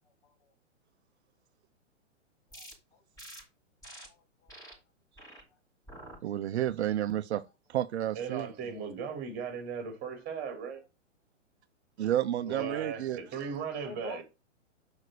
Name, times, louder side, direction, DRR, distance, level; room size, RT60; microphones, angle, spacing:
voice 1, 0.0-0.5 2.5-3.0 4.0-4.8 5.2-5.6 6.2-6.6 10.6-10.7 12.4-12.9 13.8-14.2, left 5 dB, 50° left, 2.3 m, -50 dB
sound 1, 2.5-2.7 3.2-3.4 3.8-4.1 4.5-4.7 5.2-5.4 5.9-6.2 6.7-7.0, right 1 dB, 10° left, 5.2 m, -48 dB
voice 2, 6.2-7.4 7.7-8.5 12.0-13.2, right 12 dB, 60° right, 0.6 m, -30 dB
voice 3, 8.1-10.8 12.4-14.2, right 6 dB, 25° right, 3.7 m, -37 dB
6.3 x 5.1 x 6.7 m
hypercardioid pair, 135°, 37 cm